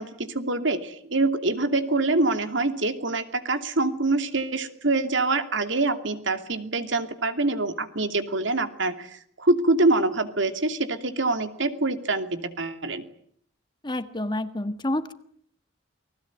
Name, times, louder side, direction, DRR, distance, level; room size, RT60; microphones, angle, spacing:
voice 1, 0.0-13.0, right 2 dB, 65° right, 9 dB, 2.7 m, -25 dB
voice 2, 13.8-15.1, left 1 dB, 20° left, 11 dB, 1.5 m, -28 dB
29.5 x 20.5 x 9.3 m, 0.65 s
head